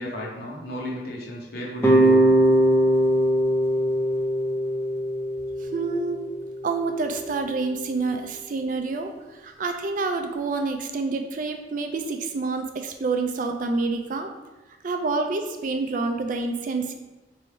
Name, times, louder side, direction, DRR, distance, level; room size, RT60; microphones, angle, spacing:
voice 1, 0.0-2.2, left 1 dB, 60° left, -4 dB, 1.0 m, -33 dB
sound 1, 1.8-6.9, right 1 dB, 15° left, 0.5 m, -21 dB
voice 2, 5.6-6.2 6.6-14.3 14.8-16.9, right 3 dB, 50° right, 5 dB, 0.4 m, -28 dB
3.4 x 2.6 x 4.4 m, 1.1 s
head